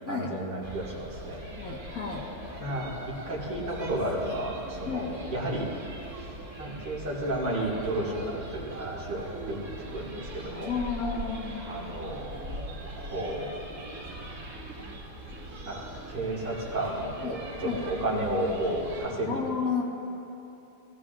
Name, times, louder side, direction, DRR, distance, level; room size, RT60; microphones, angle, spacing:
voice 1, 0.1-1.4 2.6-2.9 3.3-5.7 6.1-9.6 9.9-10.7 11.7-12.4 13.0-13.5 15.7-19.7, right 1 dB, 60° right, -5 dB, 2.9 m, -32 dB
sound 1, 0.6-19.1, right 1 dB, 80° right, 2.6 m, -41 dB
voice 2, 1.5-2.3 4.9-5.1 10.6-11.7 17.2-17.8 19.3-19.8, left 5 dB, 50° left, -3 dB, 1.9 m, -32 dB
20.5 x 15.0 x 2.6 m, 3.0 s
omnidirectional pair, 2.1 m